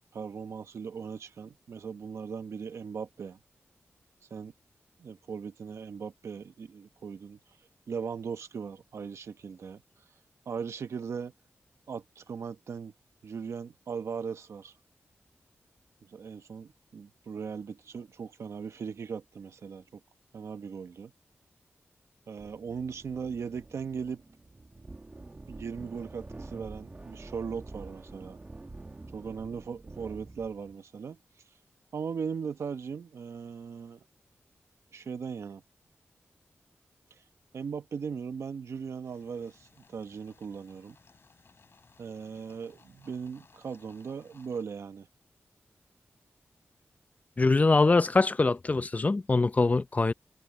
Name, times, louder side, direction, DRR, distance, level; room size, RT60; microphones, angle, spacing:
voice 1, 0.1-3.4 4.3-4.5 5.0-7.4 7.9-9.8 10.5-11.3 11.9-12.9 13.2-14.7 16.0-20.0 20.3-21.1 22.3-24.2 25.5-28.4 29.1-31.2 31.9-34.0 34.9-35.6 37.1-37.2 37.5-41.0 42.0-45.1, right 6 dB, 85° right, 1.1 m, -38 dB
sound 1, 22.4-30.7, right 2 dB, 30° right, 1.4 m, -47 dB
sound 2, 39.0-44.6, left 4 dB, 55° left, 6.5 m, -61 dB
voice 2, 47.4-50.1, left 3 dB, 35° left, 0.7 m, -23 dB
wide cardioid pair, 80°, 5 cm